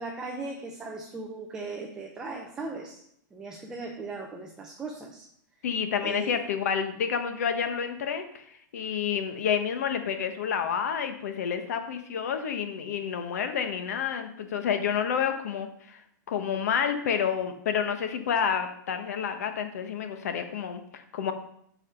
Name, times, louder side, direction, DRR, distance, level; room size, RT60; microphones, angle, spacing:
voice 1, 0.0-3.0 3.3-5.3 6.0-6.4, right 3 dB, 5° right, 1 dB, 0.5 m, -38 dB
voice 2, 5.6-16.0 16.3-21.3, left 7 dB, 50° left, 7 dB, 1.0 m, -29 dB
7.6 x 4.9 x 5.8 m, 0.69 s
supercardioid pair, 180°, 11 cm